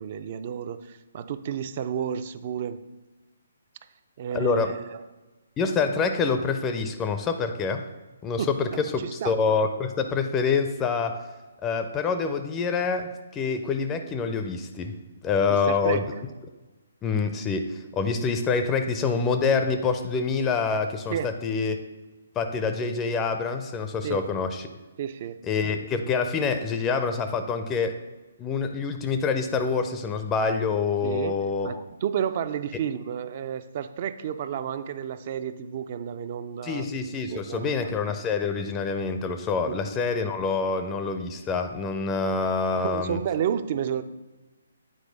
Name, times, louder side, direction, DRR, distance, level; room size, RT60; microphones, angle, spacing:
voice 1, 0.0-2.8 4.2-5.0 8.4-9.3 15.5-16.0 21.1-21.4 24.0-24.3 25.0-25.4 31.0-36.9 37.3-37.9 39.7-39.8 42.8-44.0, right 8 dB, 40° right, 12 dB, 0.4 m, -31 dB
voice 2, 4.3-4.7 5.6-7.8 8.2-11.2 11.6-14.9 15.2-16.0 17.0-21.8 22.4-24.7 25.4-28.0 28.4-31.8 36.6-43.2, left 5 dB, 15° left, 7 dB, 0.4 m, -26 dB
8.7 x 4.6 x 3.9 m, 1.2 s
figure-of-eight pair, 135°, 0 cm